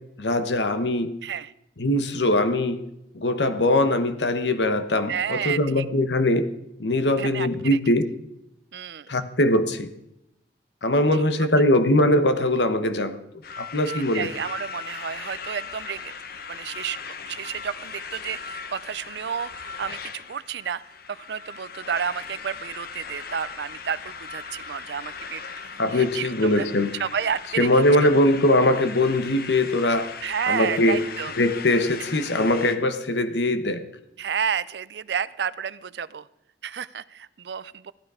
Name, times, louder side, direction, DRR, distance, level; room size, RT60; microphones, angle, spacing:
voice 1, 0.2-1.2 1.8-2.9 3.1-6.5 6.8-8.1 9.1-9.9 10.8-13.2 13.6-14.3 25.8-26.9 27.6-30.2 30.5-31.0 31.4-33.9, left 1 dB, 80° left, 1.2 m, -21 dB
voice 2, 5.1-5.9 7.2-7.8 8.7-9.1 11.4-11.7 13.9-16.1 16.5-20.8 21.1-25.4 25.7-26.7 26.9-28.2 30.2-31.3 34.2-36.3 36.6-37.9, right 7 dB, 70° right, 0.5 m, -31 dB
sound 1, 13.4-32.8, left 5 dB, 60° left, 1.0 m, -38 dB
15.0 x 12.0 x 4.9 m
head